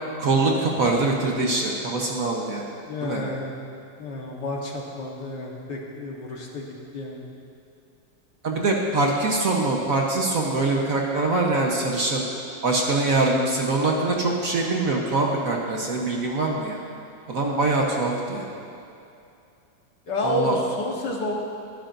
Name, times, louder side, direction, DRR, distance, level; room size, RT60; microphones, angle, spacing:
voice 1, 0.2-2.7 3.0-3.2 8.4-12.2 12.6-16.8 17.3-18.5 20.2-20.6, right 2 dB, 50° right, -1 dB, 1.4 m, -23 dB
voice 2, 2.9-3.5 4.0-7.2 20.1-21.4, left 1 dB, 65° left, -1 dB, 2.0 m, -30 dB
23.0 x 10.0 x 2.7 m, 2.6 s
omnidirectional pair, 2.1 m